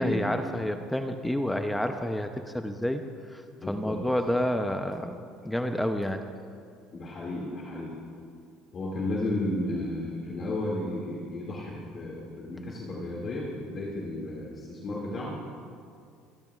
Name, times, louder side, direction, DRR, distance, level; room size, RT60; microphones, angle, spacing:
voice 1, 0.0-5.2 5.4-6.2, left 1 dB, 5° left, 7 dB, 0.5 m, -29 dB
voice 2, 3.6-4.0 6.9-8.0 8.7-15.3, left 1 dB, 35° left, -4 dB, 2.0 m, -33 dB
25.5 x 11.0 x 2.3 m, 2.3 s
cardioid pair, 125°, 0 cm